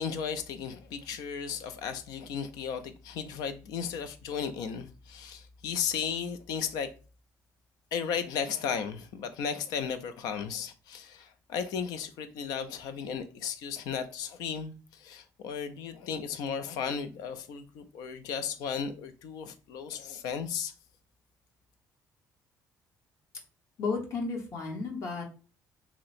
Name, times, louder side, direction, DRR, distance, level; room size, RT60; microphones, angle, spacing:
voice 1, 0.0-6.9 7.9-20.7, left 7 dB, 85° left, 0.4 m, -35 dB
voice 2, 23.8-25.3, left 4 dB, 50° left, 0.9 m, -33 dB
2.8 x 2.0 x 4.0 m
cardioid pair, 140°, 6 cm